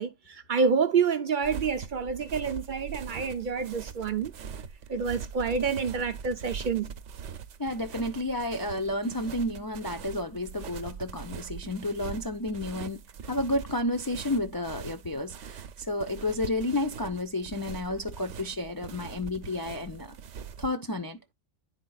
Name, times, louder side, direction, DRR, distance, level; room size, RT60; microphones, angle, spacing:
voice 1, 0.0-4.3 4.9-6.9, right 5 dB, 55° right, 0.6 m, -28 dB
sound 1, 1.4-20.7, right 7 dB, 90° right, 1.0 m, -42 dB
voice 2, 7.6-20.2 20.6-21.2, left 1 dB, 35° left, 0.3 m, -31 dB
10.5 x 4.3 x 2.3 m
omnidirectional pair, 1.2 m